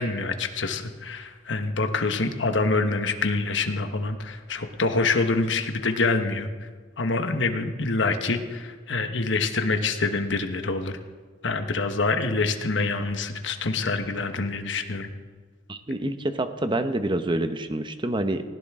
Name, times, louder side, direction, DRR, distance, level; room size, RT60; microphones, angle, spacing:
voice 1, 0.0-6.5 7.0-10.9 11.4-15.1, left 3 dB, 75° left, 7 dB, 1.2 m, -26 dB
voice 2, 15.7-18.4, right 1 dB, 25° right, 9 dB, 0.9 m, -27 dB
19.0 x 16.5 x 3.7 m, 1.5 s
head